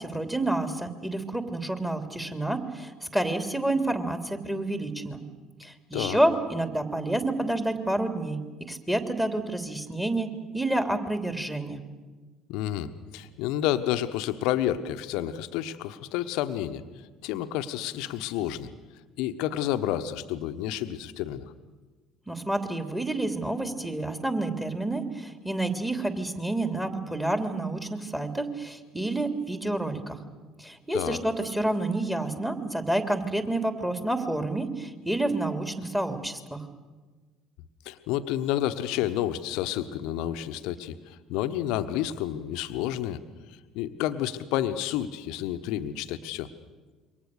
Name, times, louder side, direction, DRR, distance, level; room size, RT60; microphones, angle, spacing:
voice 1, 0.0-5.2 5.6-8.4 8.7-10.3 10.5-11.8 22.3-30.2 30.6-36.6, right 1 dB, 5° right, 7 dB, 3.2 m, -29 dB
voice 2, 12.5-16.8 17.2-18.7 19.2-21.4 30.9-31.2 37.8-43.2 43.7-46.5, left 12 dB, 65° left, 9 dB, 1.3 m, -30 dB
27.0 x 23.5 x 6.7 m, 1.3 s
figure-of-eight pair, 55°, 0 cm